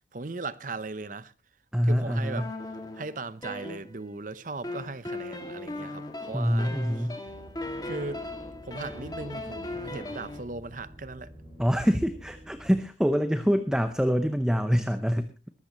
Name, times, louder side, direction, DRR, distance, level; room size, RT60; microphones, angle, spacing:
voice 1, 0.1-1.3 1.9-2.5 2.9-7.1 7.8-8.2 8.6-11.3, right 3 dB, 45° right, 0.7 m, -38 dB
voice 2, 1.7-2.5 6.3-7.2 11.6-15.3, equal, 5° right, 0.7 m, -25 dB
sound 1, 2.4-4.2 4.6-10.4, left 2 dB, 20° left, 2.0 m, -38 dB
sound 2, 7.3-12.8, equal, 25° right, 5.4 m, -49 dB
21.5 x 13.0 x 3.0 m
head